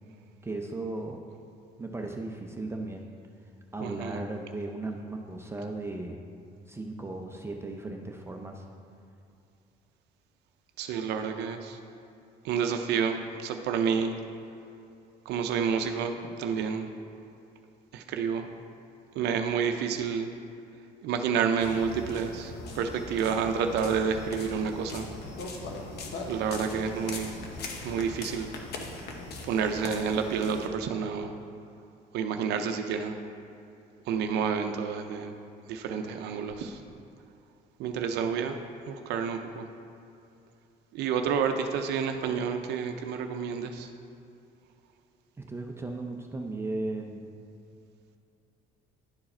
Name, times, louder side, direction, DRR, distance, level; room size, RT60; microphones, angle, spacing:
voice 1, 0.4-1.2 1.8-3.1 3.7-6.2 6.7-8.6 45.4-47.3, right 2 dB, 15° right, 2 dB, 0.5 m, -36 dB
voice 2, 3.8-4.2 10.8-11.8 12.4-14.1 15.3-16.9 17.9-18.5 19.2-20.3 21.0-25.1 26.3-27.4 27.8-28.5 29.4-31.3 32.1-33.2 34.1-35.3 35.7-36.8 37.8-38.6 38.9-39.7 40.9-43.9, right 6 dB, 80° right, 5 dB, 0.5 m, -29 dB
sound 1, 21.6-30.7, left 3 dB, 70° left, 1.0 m, -40 dB
10.5 x 4.7 x 4.3 m, 2.6 s
cardioid pair, 110°, 17 cm